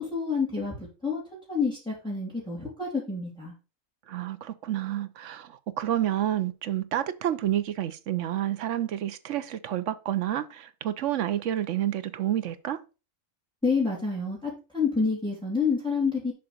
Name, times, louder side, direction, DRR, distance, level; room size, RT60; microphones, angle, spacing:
voice 1, 0.0-3.5 13.6-16.3, left 4 dB, 5° left, 2.5 m, -28 dB
voice 2, 4.1-12.8, right 11 dB, 70° right, 1.0 m, -29 dB
6.9 x 3.9 x 6.4 m
omnidirectional pair, 1.3 m